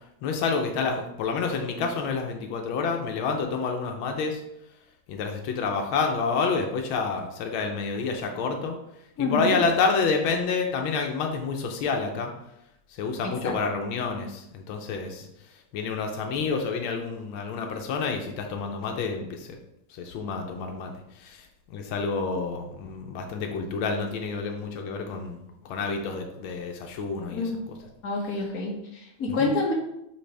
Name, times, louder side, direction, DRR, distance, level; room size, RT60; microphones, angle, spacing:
voice 1, 0.2-4.4 5.1-8.8 9.2-12.3 12.9-15.3 15.7-19.6 19.9-25.4 25.6-27.4 29.4-29.5, left 4 dB, 90° left, 3 dB, 1.6 m, -28 dB
voice 2, 9.2-9.6 13.2-13.6 27.3-27.6 28.0-29.7, left 3 dB, 50° left, -1 dB, 1.7 m, -28 dB
9.7 x 3.3 x 3.3 m, 0.83 s
omnidirectional pair, 2.2 m